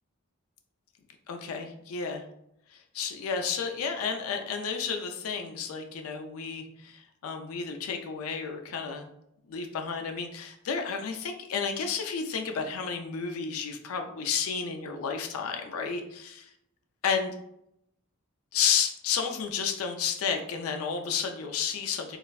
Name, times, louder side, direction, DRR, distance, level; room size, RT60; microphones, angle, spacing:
voice 1, 1.3-2.2 2.7-9.1 9.5-16.3 17.0-17.3 18.5-22.2, left 6 dB, 85° left, 4 dB, 0.4 m, -31 dB
3.1 x 2.4 x 2.3 m, 0.78 s
head